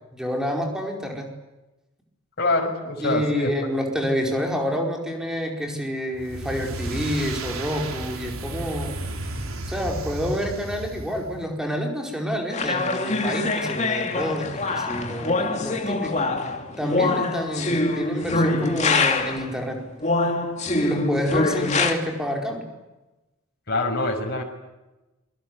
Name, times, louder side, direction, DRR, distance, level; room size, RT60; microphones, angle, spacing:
voice 1, 0.1-1.3 3.0-9.0 9.7-16.3 16.8-19.8 20.8-22.6, equal, 5° right, 2 dB, 4.9 m, -28 dB
voice 2, 2.4-3.5 23.7-24.4, left 2 dB, 50° left, 1 dB, 6.4 m, -24 dB
sound 1, 6.1-11.5, right 1 dB, 75° right, 3.8 m, -33 dB
sound 2, 12.5-19.5 20.0-21.9, left 3 dB, 30° left, 2.8 m, -24 dB
27.5 x 24.5 x 8.2 m, 1.0 s
head